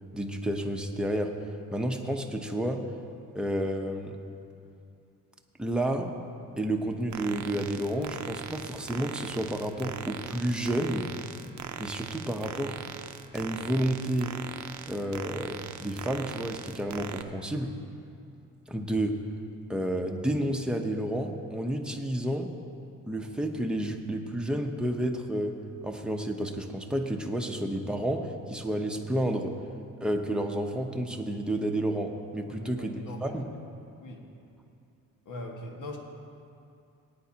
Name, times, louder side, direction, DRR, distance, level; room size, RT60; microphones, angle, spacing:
voice 1, 0.1-1.4 1.7-2.8 3.3-4.2 5.6-6.1 6.6-11.1 11.8-12.8 13.3-14.3 14.9-17.7 18.7-19.2 19.7-22.5 23.1-25.6 25.8-29.5 30.0-33.5, right 1 dB, 5° right, 2 dB, 0.8 m, -30 dB
sound 1, 7.1-17.2, right 9 dB, 60° right, 0.6 m, -40 dB
voice 2, 32.5-33.4 34.0-34.2 35.3-36.0, left 1 dB, 65° left, 1 dB, 1.8 m, -41 dB
19.0 x 9.4 x 2.9 m, 2.6 s
cardioid pair, 110°, 33 cm